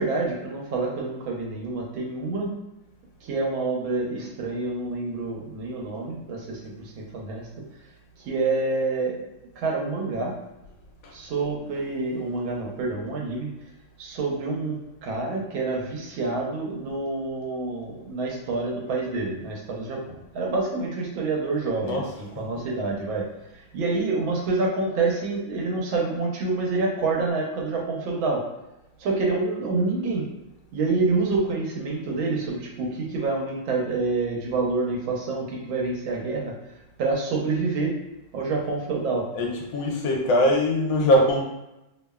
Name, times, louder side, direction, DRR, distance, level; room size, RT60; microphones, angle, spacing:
voice 1, 0.0-2.5 3.2-7.5 8.2-9.2 9.6-10.3 11.1-13.5 14.0-23.2 23.5-28.4 29.0-30.2 30.7-36.5 37.0-37.9 38.3-39.2, right 3 dB, 85° right, -2 dB, 1.5 m, -27 dB
voice 2, 39.3-41.4, left 1 dB, 80° left, 0 dB, 1.3 m, -22 dB
3.3 x 2.0 x 2.2 m, 0.95 s
omnidirectional pair, 2.1 m